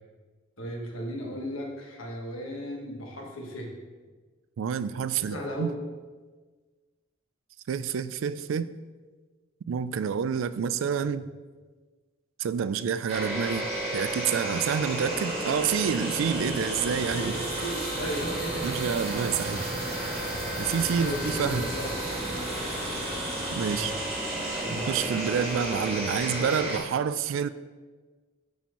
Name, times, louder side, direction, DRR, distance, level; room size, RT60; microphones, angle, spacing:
voice 1, 0.6-3.7 5.2-5.8 11.0-11.1 17.1-18.9 21.0-21.9 23.6-24.1 24.5-24.9, equal, 80° left, 0 dB, 1.4 m, -36 dB
voice 2, 4.6-5.7 7.7-8.7 9.7-11.3 12.4-17.3 18.6-19.7 20.6-21.7 23.5-23.9 24.7-27.5, right 7 dB, 70° right, 14 dB, 0.3 m, -28 dB
sound 1, 13.1-26.8, right 1 dB, 30° right, 1.9 m, -32 dB
11.0 x 4.3 x 3.0 m, 1.4 s
head